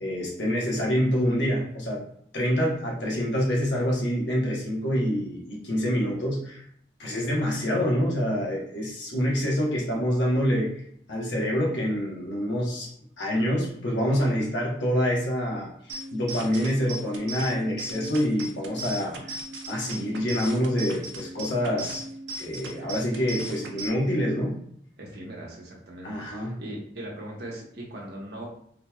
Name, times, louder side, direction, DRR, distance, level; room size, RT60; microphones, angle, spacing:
voice 1, 0.0-2.0 2.3-6.6 7.0-10.8 11.1-12.9 13.2-19.4 19.7-22.0 22.4-24.6 26.0-26.6, equal, 85° left, -3 dB, 1.1 m, -26 dB
sound 1, 15.9-23.9, right 1 dB, 85° right, 0.5 m, -38 dB
voice 2, 25.0-28.5, right 1 dB, 65° right, -3 dB, 1.0 m, -39 dB
3.8 x 3.0 x 2.3 m, 0.67 s
head